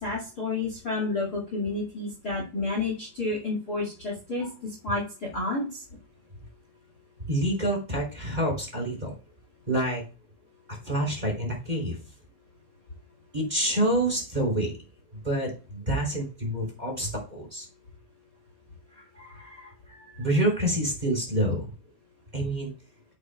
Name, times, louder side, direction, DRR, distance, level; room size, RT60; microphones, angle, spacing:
voice 1, 0.0-5.8, left 3 dB, 55° left, 0 dB, 1.0 m, -30 dB
voice 2, 7.3-9.1 9.7-10.0 10.7-12.0 13.3-14.8 15.2-17.6 18.9-21.7 22.3-22.7, right 1 dB, 10° right, -1 dB, 2.7 m, -28 dB
9.6 x 9.3 x 2.3 m, 0.34 s
omnidirectional pair, 5.5 m